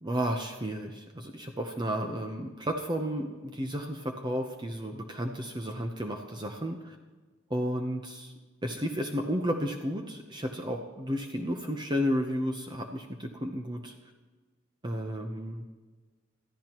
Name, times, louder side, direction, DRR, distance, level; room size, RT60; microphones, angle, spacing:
voice 1, 0.0-7.0 7.5-8.3 8.6-13.9 14.8-15.7, equal, 20° right, 3 dB, 0.7 m, -32 dB
21.5 x 13.5 x 3.0 m, 1.4 s
head